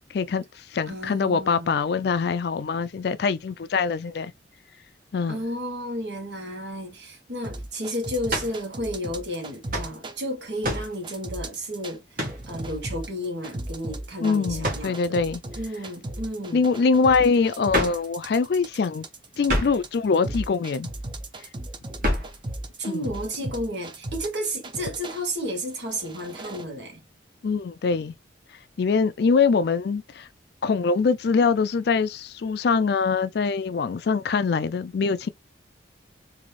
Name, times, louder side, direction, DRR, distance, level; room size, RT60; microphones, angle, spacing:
voice 1, 0.1-4.3 5.1-5.4 14.2-15.4 16.5-19.1 19.4-20.9 22.8-23.1 27.4-28.1 28.8-30.3 30.6-35.3, left 5 dB, 60° left, 0.4 m, -23 dB
voice 2, 0.9-1.7 5.3-12.0 12.5-15.2 15.6-16.6 22.8-27.0, equal, 70° right, 1.5 m, -32 dB
sound 1, 7.4-10.2 10.6-11.9 12.2-25.2 25.8-26.6, right 1 dB, 25° right, 0.6 m, -36 dB
sound 2, 8.3-8.6 9.7-9.9 10.6-10.9 12.1-12.4 14.6-14.9 17.7-18.1 19.5-19.8 22.0-22.4, equal, 50° right, 1.6 m, -27 dB
3.8 x 2.7 x 3.2 m
head